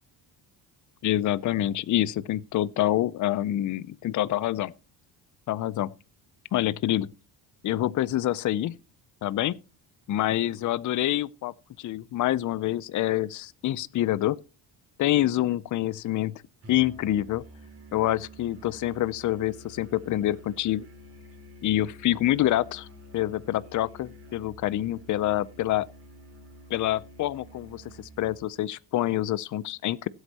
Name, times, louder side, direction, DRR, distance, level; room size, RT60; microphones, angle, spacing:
voice 1, 1.0-4.7 5.5-5.9 6.5-7.1 7.6-8.8 9.2-9.6 10.1-14.4 15.0-16.4 16.7-17.4 17.9-20.9 21.6-22.9 23.1-25.9 26.7-30.1, left 14 dB, 45° left, 0.5 m, -26 dB
Musical instrument, 16.6-28.5, equal, 35° right, 4.0 m, -49 dB
17.0 x 8.1 x 2.8 m
cardioid pair, 120°, 43 cm